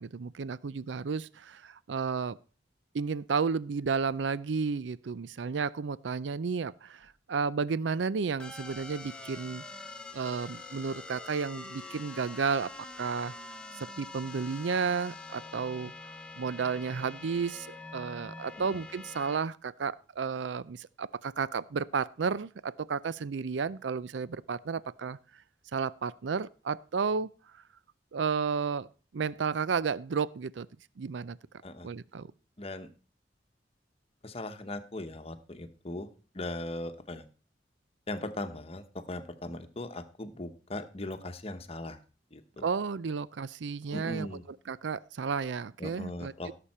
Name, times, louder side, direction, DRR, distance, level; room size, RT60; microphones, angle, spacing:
voice 1, 0.0-2.4 2.9-9.6 10.1-12.7 13.0-13.3 13.8-15.9 16.4-25.2 25.7-27.3 28.1-28.9 29.1-30.7 31.0-31.4 31.8-32.3 42.6-44.3 44.7-46.5, right 5 dB, 80° right, 19 dB, 0.5 m, -32 dB
sound 1, 8.4-19.4, left 3 dB, 5° left, 0.9 m, -45 dB
voice 2, 32.6-32.9 34.2-36.1 36.3-37.2 38.1-42.0 42.3-42.7 43.9-44.4 45.8-46.5, left 1 dB, 35° left, 9 dB, 1.0 m, -39 dB
16.5 x 6.9 x 4.3 m, 0.37 s
head